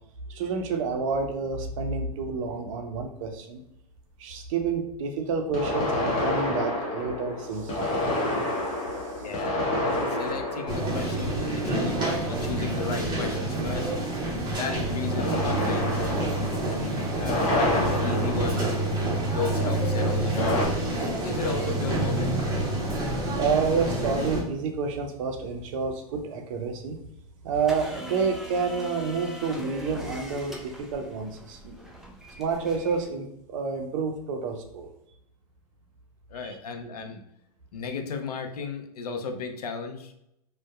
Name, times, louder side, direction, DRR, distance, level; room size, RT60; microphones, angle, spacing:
voice 1, 0.3-3.6 4.2-8.0 23.4-27.0 27.4-31.8 32.4-34.9, right 5 dB, 55° right, 5 dB, 0.5 m, -29 dB
sound 1, 1.6-1.7 5.5-12.0 15.2-19.4 20.4-20.7, left 1 dB, 35° left, 0.8 m, -29 dB
voice 2, 9.2-13.9 14.5-16.1 16.7-18.8 19.1-20.8 21.1-22.5 36.3-37.2 37.7-40.1, left 4 dB, 80° left, 5 dB, 0.5 m, -34 dB
sound 2, 10.7-24.4, right 1 dB, 20° right, 0.9 m, -28 dB
sound 3, 27.5-33.1, left 1 dB, ahead, 0.3 m, -42 dB
2.6 x 2.1 x 2.3 m, 0.80 s
hypercardioid pair, 110°, 20 cm